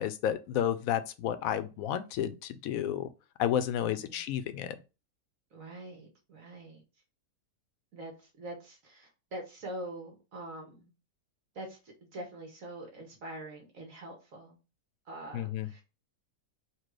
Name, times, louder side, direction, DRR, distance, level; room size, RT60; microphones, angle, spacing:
voice 1, 0.0-3.1 3.4-4.8 15.3-15.7, left 10 dB, 75° left, 1.0 m, -31 dB
voice 2, 3.8-4.2 5.5-6.8 7.9-10.9 11.5-14.6 15.1-15.8, right 1 dB, 65° right, 1.7 m, -44 dB
4.4 x 2.4 x 4.7 m
omnidirectional pair, 1.6 m